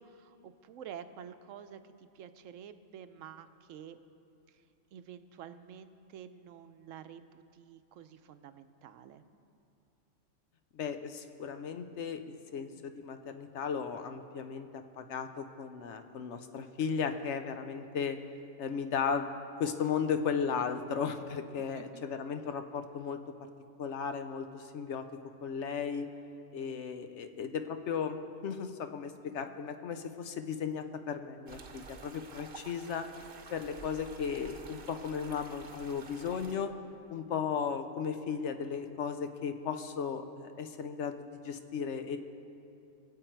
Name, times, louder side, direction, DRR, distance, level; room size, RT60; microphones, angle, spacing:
voice 1, 0.0-4.0 4.5-4.6 4.9-9.2 21.6-22.0, right 8 dB, 80° right, 11 dB, 1.0 m, -49 dB
voice 2, 10.7-18.2 18.6-19.3 19.6-23.2 23.8-25.0 25.4-26.1 26.5-33.1 33.5-36.7 37.1-42.2, left 6 dB, 70° left, 8 dB, 1.0 m, -35 dB
Creek Trickle, 31.5-36.6, right 4 dB, 50° right, 0.9 m, -50 dB
22.5 x 8.0 x 4.5 m, 2.6 s
omnidirectional pair, 1.3 m